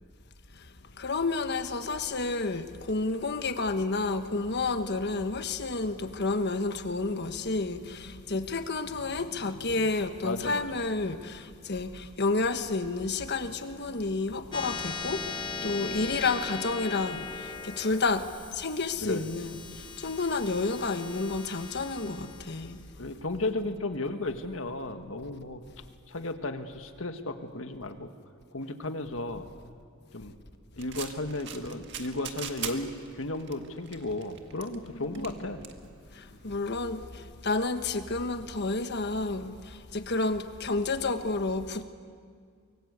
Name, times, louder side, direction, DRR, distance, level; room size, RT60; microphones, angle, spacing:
voice 1, 1.0-18.3 18.5-22.8 34.9-35.4 36.1-41.8, left 3 dB, 55° left, 1.4 m, -30 dB
voice 2, 10.2-10.6 11.0-11.1 16.0-16.1 19.0-19.3 23.0-25.6 26.1-28.1 28.5-29.5 30.1-30.3 30.8-35.7, left 2 dB, 75° left, 1.7 m, -34 dB
sound 1, 14.5-25.4, left 4 dB, 25° left, 0.9 m, -40 dB
sound 2, 30.8-36.6, right 8 dB, 60° right, 1.7 m, -43 dB
24.0 x 24.0 x 8.2 m
head